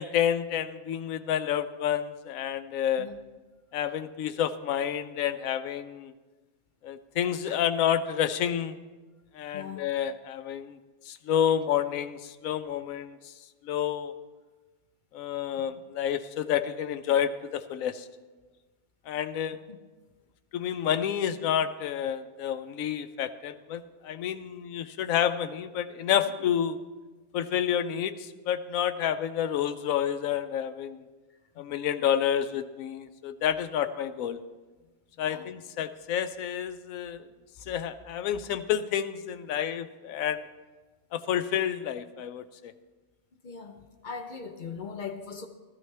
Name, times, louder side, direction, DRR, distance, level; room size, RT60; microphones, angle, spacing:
voice 1, 0.0-3.1 3.7-6.1 6.8-8.8 9.3-10.8 11.0-13.1 13.6-14.1 15.1-18.1 19.1-19.6 20.5-26.8 27.3-31.0 31.6-34.4 35.2-37.3 37.7-40.4 41.1-42.7, left 9 dB, 90° left, 11 dB, 1.0 m, -29 dB
voice 2, 43.4-45.5, left 5 dB, 45° left, 6 dB, 0.8 m, -40 dB
14.5 x 12.5 x 3.4 m, 1.3 s
omnidirectional pair, 1.4 m